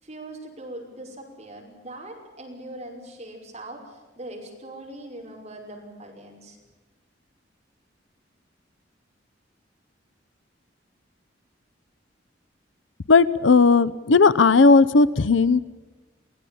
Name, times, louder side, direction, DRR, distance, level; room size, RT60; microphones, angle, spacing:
voice 1, 0.0-6.6, right 1 dB, 35° right, 0 dB, 5.7 m, -41 dB
voice 2, 13.1-15.6, left 4 dB, 85° left, 17 dB, 0.7 m, -16 dB
24.0 x 16.5 x 8.6 m, 1.2 s
head